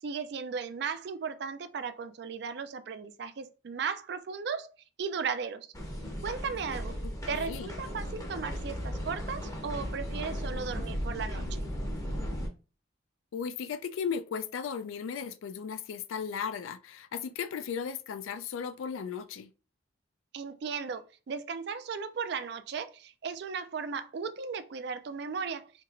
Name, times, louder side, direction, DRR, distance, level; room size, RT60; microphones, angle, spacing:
voice 1, 0.0-4.7 5.0-5.7 6.2-6.9 7.3-11.6 20.3-25.7, right 5 dB, 55° right, 0.3 m, -36 dB
sound 1, 5.7-12.5, equal, 15° left, 0.6 m, -36 dB
voice 2, 7.3-7.7 13.3-19.5, left 6 dB, 80° left, 0.4 m, -36 dB
4.5 x 2.8 x 2.4 m
head